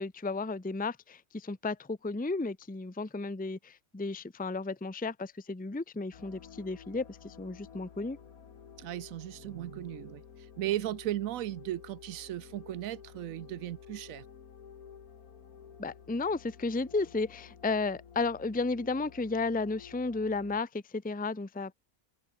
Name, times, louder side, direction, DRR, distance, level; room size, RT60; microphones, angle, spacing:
voice 1, 0.0-8.2 15.8-21.7, left 3 dB, 10° left, 0.7 m, -33 dB
sound 1, 6.1-20.6, left 7 dB, 80° left, 2.0 m, -52 dB
voice 2, 8.8-10.2 10.6-14.2, right 13 dB, 70° right, 1.0 m, -36 dB
open air
omnidirectional pair, 1.5 m